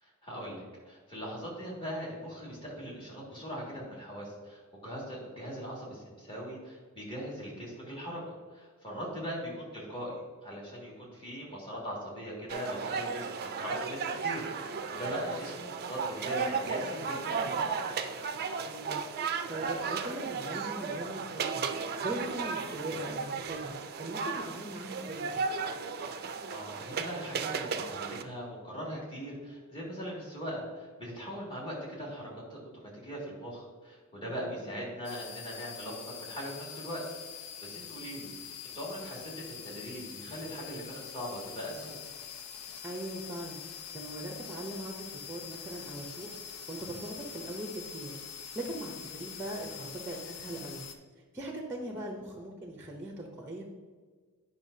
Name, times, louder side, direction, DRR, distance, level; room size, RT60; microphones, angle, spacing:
voice 1, 0.0-8.2 8.5-17.8 26.2-37.0 37.3-42.0, equal, 25° left, -5 dB, 2.2 m, -40 dB
sound 1, 12.5-28.2, right 5 dB, 45° right, 0.4 m, -35 dB
voice 2, 15.1-15.4 18.7-19.0 19.5-21.6 22.0-25.4 34.2-34.8 42.8-43.6 43.9-46.3 46.7-48.1 48.5-50.8 51.3-53.7, right 1 dB, 10° right, 1 dB, 0.7 m, -40 dB
sound 2, 35.0-50.9, left 7 dB, 90° left, 0.6 m, -45 dB
9.1 x 5.6 x 2.7 m, 1.5 s
head